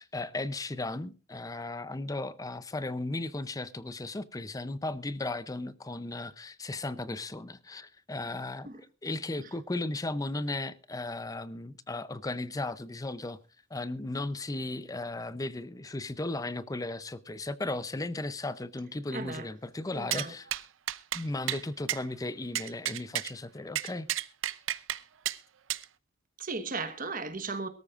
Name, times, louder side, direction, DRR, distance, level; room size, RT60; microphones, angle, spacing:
voice 1, 0.0-8.7 9.0-13.4 13.7-20.5 21.1-24.1, left 2 dB, 20° left, 0.6 m, -36 dB
voice 2, 19.1-19.5 19.9-20.3 26.4-27.7, right 4 dB, 45° right, 1.2 m, -36 dB
sound 1, 20.1-20.3 20.5-20.6 20.9-21.2 21.5-21.6 21.9-22.0 22.5-23.3 23.7-25.0 25.2-25.4 25.7-25.8, right 12 dB, 75° right, 0.7 m, -31 dB
22.5 x 13.5 x 2.5 m
head